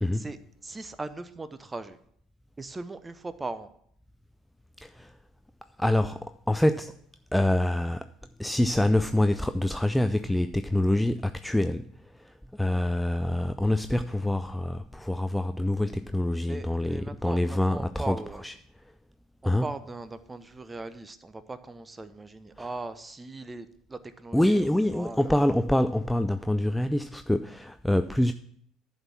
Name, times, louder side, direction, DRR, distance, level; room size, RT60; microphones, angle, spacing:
voice 1, 0.1-2.0 2.6-3.7 16.5-18.4 19.4-25.4, right 3 dB, 20° right, 0.8 m, -39 dB
voice 2, 5.8-6.9 7.3-8.1 8.4-11.9 12.2-18.2 18.4-18.5 19.5-19.7 22.6-22.7 24.3-28.3, left 1 dB, 5° left, 0.4 m, -26 dB
11.0 x 4.4 x 7.1 m
figure-of-eight pair, 60°, 0 cm